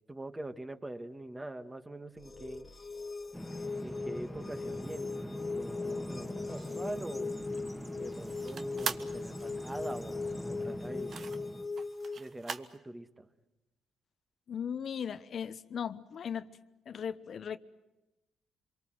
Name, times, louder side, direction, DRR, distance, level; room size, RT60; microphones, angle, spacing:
voice 1, 0.1-2.7 3.8-7.3 8.0-11.1 12.2-13.3, right 1 dB, 15° right, 8 dB, 1.9 m, -43 dB
sound 1, 2.2-12.2, left 3 dB, 30° left, 1.1 m, -39 dB
Bird vocalization bird call bird song, 3.3-11.7, left 1 dB, 5° left, 1.9 m, -43 dB
sound 2, 6.5-12.8, right 6 dB, 55° right, 1.3 m, -43 dB
voice 2, 14.5-16.5 16.9-17.6, left 7 dB, 60° left, 13 dB, 1.0 m, -37 dB
26.0 x 23.5 x 7.9 m, 0.98 s
cardioid pair, 75°, 0 cm